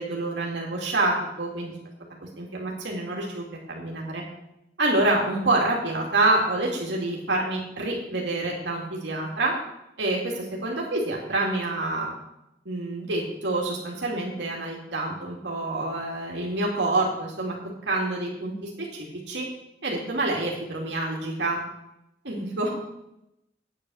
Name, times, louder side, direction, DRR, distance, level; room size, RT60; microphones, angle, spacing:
voice 1, 0.0-1.7 2.2-4.2 4.8-9.5 10.0-12.1 12.7-17.6 17.9-19.5 19.8-21.6 22.2-22.7, right 2 dB, 80° right, -2 dB, 2.3 m, -27 dB
9.0 x 8.9 x 6.2 m, 0.86 s
head